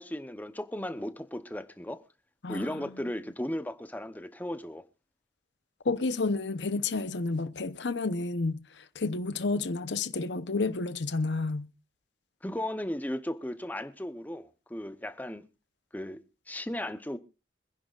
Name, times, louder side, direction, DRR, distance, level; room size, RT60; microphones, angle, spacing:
voice 1, 0.0-2.0 2.5-4.8 12.4-15.4 15.9-17.2, left 1 dB, 10° left, 0.8 m, -36 dB
voice 2, 2.4-3.0 5.8-11.7, left 3 dB, 75° left, 0.8 m, -31 dB
25.5 x 10.5 x 2.4 m
head